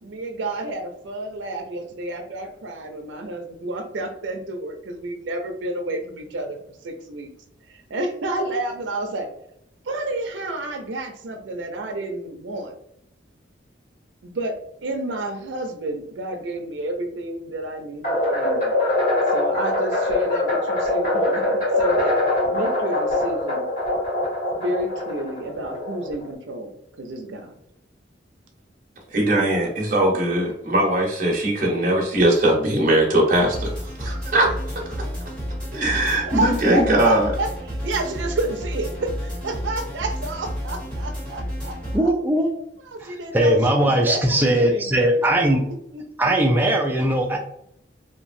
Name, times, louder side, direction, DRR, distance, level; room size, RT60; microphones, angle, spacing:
voice 1, 0.0-7.3 7.7-9.3 9.8-12.7 14.2-18.8 19.3-22.2 22.5-23.7 24.6-27.6 36.2-42.1 42.9-45.5 45.9-46.3, right 2 dB, 85° right, 5 dB, 0.5 m, -30 dB
sound 1, 18.0-26.3, left 1 dB, 45° left, 1.3 m, -23 dB
voice 2, 29.1-34.5 35.7-37.3, right 1 dB, 45° right, -2 dB, 0.7 m, -20 dB
sound 2, 33.3-42.0, equal, 5° left, 1.0 m, -31 dB
voice 3, 41.9-42.5 43.0-45.6 46.2-47.4, right 1 dB, 10° right, 1 dB, 0.4 m, -19 dB
2.9 x 2.4 x 2.6 m, 0.72 s
head